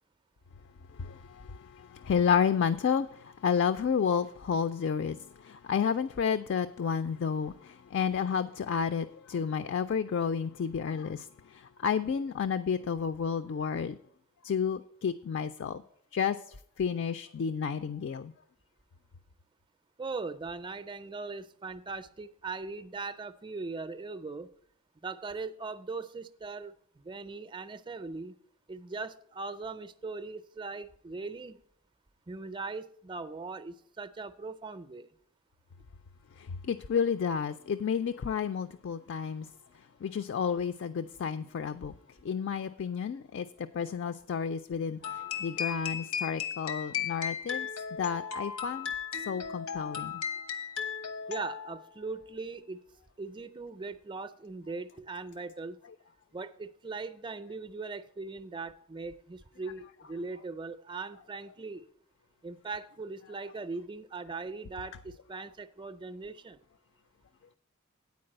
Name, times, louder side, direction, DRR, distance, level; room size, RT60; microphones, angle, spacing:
voice 1, 1.0-14.0 14.4-15.8 16.1-16.4 16.8-18.3 36.4-39.5 40.0-41.9 42.2-48.9 49.3-50.2, left 7 dB, 55° left, 0.3 m, -31 dB
voice 2, 20.0-24.5 25.0-28.3 28.7-31.6 32.3-35.1 51.3-52.8 53.2-55.8 56.3-61.9 62.4-66.6, right 3 dB, 20° right, 0.4 m, -40 dB
sound 1, 45.0-51.9, left 7 dB, 85° left, 1.0 m, -36 dB
9.4 x 4.6 x 7.7 m
head